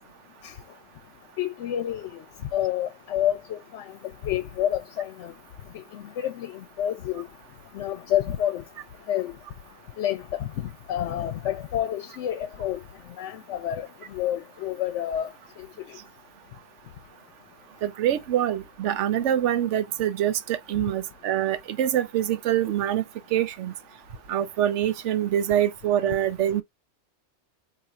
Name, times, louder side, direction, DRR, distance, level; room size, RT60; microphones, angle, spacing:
voice 1, 1.4-2.1 2.5-3.8 4.2-5.3 5.9-7.2 7.7-8.6 9.1-9.3 10.0-12.8 13.2-13.9 14.1-15.3, left 11 dB, 75° left, 0.9 m, -28 dB
voice 2, 17.8-23.0 23.3-23.7 24.3-26.6, right 11 dB, 80° right, 0.9 m, -25 dB
4.1 x 2.8 x 2.3 m
omnidirectional pair, 1.2 m